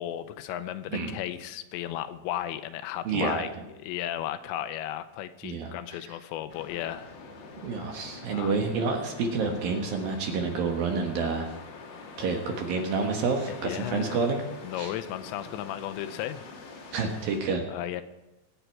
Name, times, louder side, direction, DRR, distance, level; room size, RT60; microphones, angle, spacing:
voice 1, 0.0-3.5 3.8-7.1 8.3-8.5 13.5-14.3 14.6-16.4 17.7-18.0, left 12 dB, 85° left, 11 dB, 2.9 m, -34 dB
voice 2, 3.1-3.4 5.4-5.7 7.6-11.5 12.2-14.5 14.8-14.9 16.9-17.6, right 4 dB, 65° right, 3 dB, 2.8 m, -28 dB
sound 1, 6.5-17.4, left 4 dB, 60° left, 3.4 m, -45 dB
23.5 x 8.1 x 4.6 m, 1.0 s
omnidirectional pair, 5.2 m